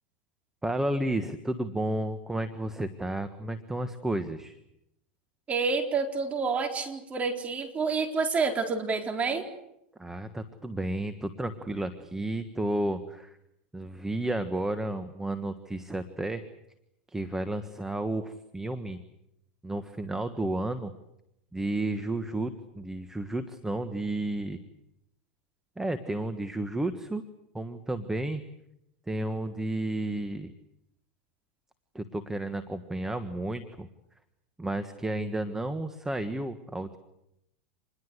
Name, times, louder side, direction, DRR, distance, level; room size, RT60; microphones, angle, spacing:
voice 1, 0.6-4.6 10.0-13.4 13.7-16.4 17.1-19.0 19.6-20.9 21.5-24.6 25.8-27.2 27.5-28.4 29.1-30.5 31.9-33.9 34.6-37.0, right 1 dB, 10° right, 9 dB, 1.5 m, -32 dB
voice 2, 5.5-9.4, right 4 dB, 25° right, 4 dB, 4.2 m, -28 dB
27.5 x 21.0 x 8.2 m, 0.82 s
supercardioid pair, 120°, 6 cm